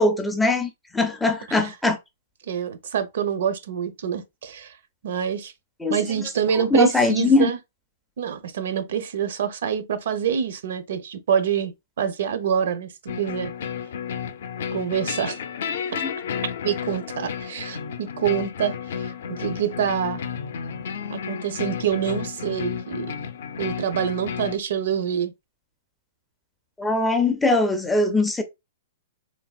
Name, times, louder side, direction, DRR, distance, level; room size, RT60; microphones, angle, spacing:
voice 1, 0.0-2.0 5.8-6.0 6.7-7.5 15.9-16.2 26.8-28.4, left 2 dB, 5° left, 0.4 m, -21 dB
voice 2, 2.5-4.7 5.0-5.5 5.9-7.6 8.2-11.7 12.0-12.9 13.2-13.5 14.7-15.4 16.6-20.2 21.1-23.1 23.6-25.3, right 8 dB, 65° right, 0.5 m, -26 dB
sound 1, 13.1-24.6, left 7 dB, 65° left, 0.4 m, -32 dB
3.3 x 2.6 x 2.3 m
hypercardioid pair, 165°, 0 cm